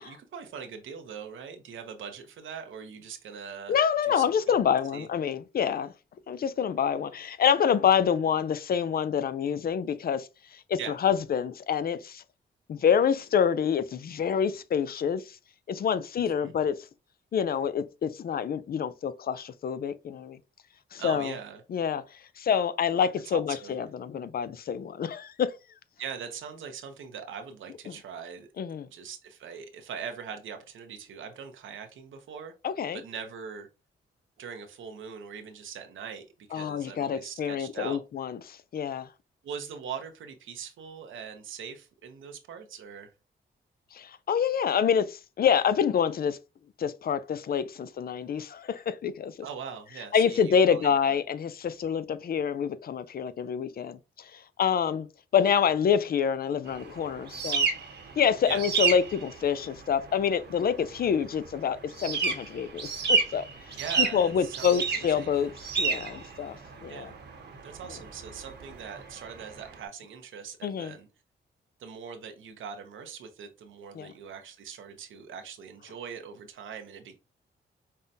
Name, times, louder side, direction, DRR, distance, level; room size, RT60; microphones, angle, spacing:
voice 1, 0.0-3.8 4.1-5.1 10.8-11.0 16.4-16.5 21.0-21.6 23.3-23.8 26.0-28.5 28.9-32.5 32.9-33.7 34.4-38.0 39.4-43.1 49.4-51.2 58.5-58.6 63.8-65.3 66.9-67.1 67.6-71.1 71.8-77.2, right 7 dB, 75° right, 0.7 m, -41 dB
voice 2, 3.7-5.9 6.3-12.2 12.7-15.4 15.7-16.8 17.3-20.4 20.9-21.3 21.7-25.5 27.9-28.0 28.6-28.9 32.6-33.0 36.5-39.1 43.9-46.4 46.8-49.5 50.1-55.1 55.3-57.7 58.2-65.5 65.8-67.1 70.6-70.9 73.9-74.1, left 7 dB, 50° left, 0.4 m, -27 dB
sound 1, 56.7-69.8, right 5 dB, 60° right, 1.0 m, -32 dB
5.4 x 2.1 x 2.6 m
cardioid pair, 75°, 20 cm